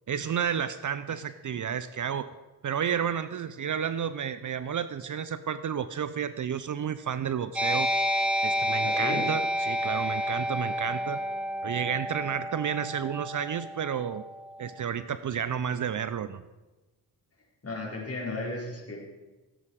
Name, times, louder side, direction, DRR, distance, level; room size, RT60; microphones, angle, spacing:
voice 1, 0.1-2.3 2.6-7.9 8.4-11.2 11.6-14.2 14.6-16.4, right 8 dB, 45° right, 14 dB, 0.6 m, -31 dB
sound 1, 7.6-14.6, equal, 5° right, 1.8 m, -30 dB
voice 2, 8.8-9.2 17.6-19.0, left 2 dB, 35° left, -2 dB, 4.5 m, -34 dB
16.0 x 8.6 x 4.8 m, 1.1 s
cardioid pair, 65°, 42 cm